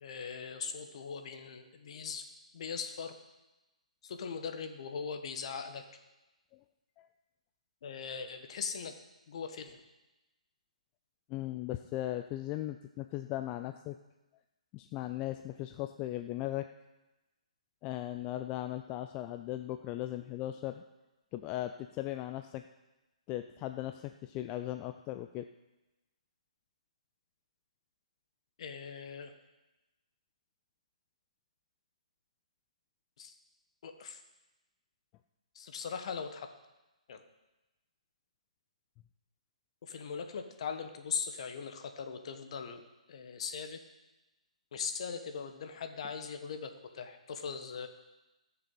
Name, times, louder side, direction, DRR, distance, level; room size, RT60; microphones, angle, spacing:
voice 1, 0.0-2.2 2.5-3.1 4.0-5.8 7.8-8.9 9.3-9.8 28.6-29.3 33.2-33.3 33.8-34.2 35.5-36.5 37.1-37.2 39.8-42.8 43.1-43.8 44.7-47.9, left 6 dB, 50° left, 6 dB, 1.5 m, -40 dB
voice 2, 11.3-14.0 14.7-16.7 17.8-20.8 21.3-22.6 23.3-25.5, left 14 dB, 25° left, 8 dB, 0.4 m, -38 dB
18.5 x 6.8 x 5.7 m, 1.0 s
figure-of-eight pair, 135°, 4 cm